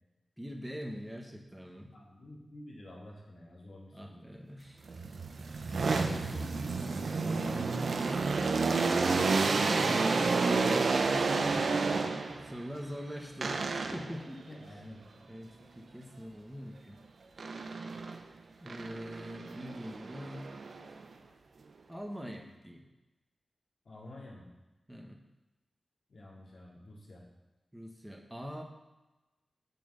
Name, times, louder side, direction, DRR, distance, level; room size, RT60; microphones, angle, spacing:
voice 1, 0.4-1.9 3.9-4.8 9.4-14.8 15.3-17.0 18.6-20.5 21.9-22.9 24.9-25.2 27.7-28.6, equal, 10° right, 2 dB, 1.3 m, -43 dB
voice 2, 1.9-4.3 6.0-8.4 14.5-15.0 23.8-24.5 26.1-27.2, left 1 dB, 70° left, -3 dB, 2.6 m, -49 dB
sound 1, 4.9-12.5 13.4-14.2 17.4-18.2 18.7-21.0, right 4 dB, 70° right, 0.8 m, -30 dB
7.1 x 6.1 x 6.9 m, 1.1 s
cardioid pair, 65°, 0 cm